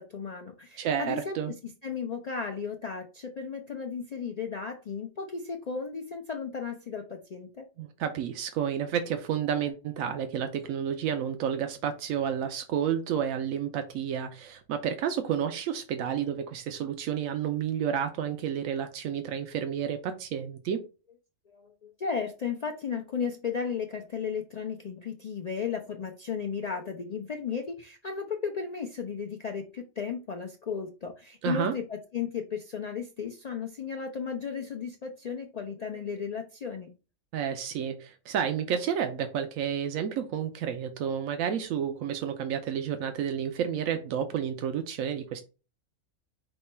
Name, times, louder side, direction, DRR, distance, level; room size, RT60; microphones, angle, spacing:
voice 1, 0.0-1.6 1.8-7.7 21.5-36.9, left 6 dB, 85° left, 4 dB, 0.3 m, -35 dB
voice 2, 0.8-1.5 7.8-20.8 31.4-31.7 37.3-45.4, right 8 dB, 90° right, 7 dB, 1.0 m, -30 dB
5.5 x 2.2 x 4.2 m, 0.32 s
omnidirectional pair, 1.4 m